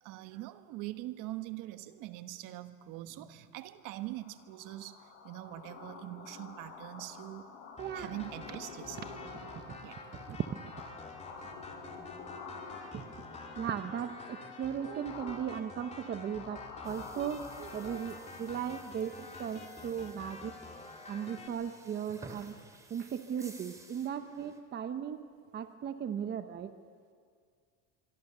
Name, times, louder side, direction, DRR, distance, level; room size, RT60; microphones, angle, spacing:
voice 1, 0.0-7.5 7.9-9.0 9.8-10.0 11.4-11.5 13.1-13.5 21.3-21.4, right 15 dB, 55° right, 10 dB, 1.3 m, -43 dB
sound 1, 3.8-19.1, left 4 dB, 80° left, 7.2 m, -49 dB
sound 2, 7.8-21.5, left 3 dB, 15° left, 3.3 m, -49 dB
voice 2, 7.8-8.1 9.4-9.8 10.1-10.4 11.4-11.6 12.9-13.1 13.5-16.6 16.8-20.5 21.0-22.6 22.9-25.2 25.5-26.7, right 8 dB, 25° right, 9 dB, 0.9 m, -37 dB
sound 3, 16.8-24.6, right 1 dB, 10° right, 2.8 m, -55 dB
25.0 x 24.0 x 6.8 m, 2.1 s
supercardioid pair, 140°, 38 cm